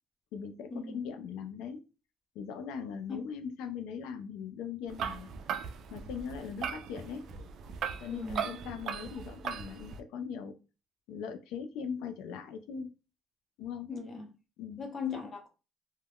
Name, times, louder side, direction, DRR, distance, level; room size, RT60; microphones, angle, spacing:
voice 1, 0.3-1.8 2.4-5.3 5.9-7.3 8.0-10.5 11.1-12.9 13.6-13.9 14.6-14.8, left 7 dB, 80° left, 0.3 m, -40 dB
sound 1, 4.9-10.0, right 7 dB, 55° right, 0.3 m, -38 dB
voice 2, 8.1-8.5 13.9-14.3 14.8-15.5, left 5 dB, 30° left, 0.9 m, -38 dB
2.2 x 2.1 x 3.4 m
cardioid pair, 125°, 0 cm